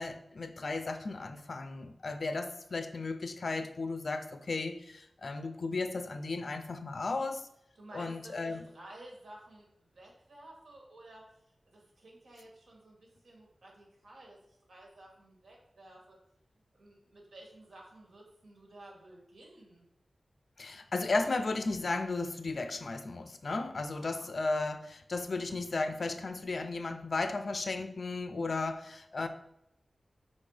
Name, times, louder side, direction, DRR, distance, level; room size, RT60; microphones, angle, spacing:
voice 1, 0.0-7.5 7.9-8.6 20.6-29.3, left 3 dB, 60° left, 0.6 m, -35 dB
voice 2, 7.8-9.7 9.9-16.2 16.7-19.9 24.0-24.3, right 1 dB, 90° right, 2.1 m, -53 dB
5.7 x 4.2 x 5.0 m
wide cardioid pair, 105°, 0 cm